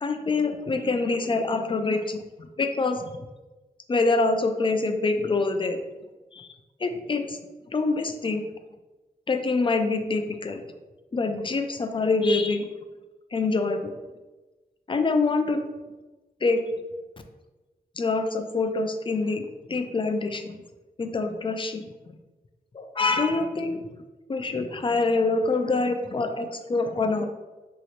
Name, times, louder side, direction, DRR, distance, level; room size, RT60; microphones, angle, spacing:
voice 1, 0.0-3.0 3.9-5.8 6.3-6.5 6.8-7.4 7.7-8.4 9.3-10.6 11.1-12.7 13.3-13.9 14.9-15.6 16.4-16.6 18.0-20.6 21.0-21.9 22.7-23.8 24.3-27.3, left 3 dB, 30° left, 7 dB, 0.3 m, -25 dB
3.0 x 2.8 x 2.9 m, 1.2 s
wide cardioid pair, 75°, 17 cm